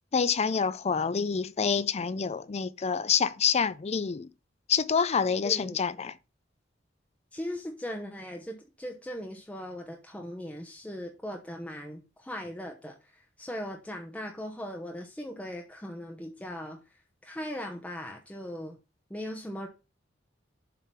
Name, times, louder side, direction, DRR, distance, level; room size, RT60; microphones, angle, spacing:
voice 1, 0.1-4.3 4.7-6.2, left 6 dB, 35° left, 0.4 m, -27 dB
voice 2, 5.4-5.8 7.3-18.8 19.1-19.7, equal, 5° left, 0.9 m, -39 dB
7.4 x 3.8 x 5.7 m
head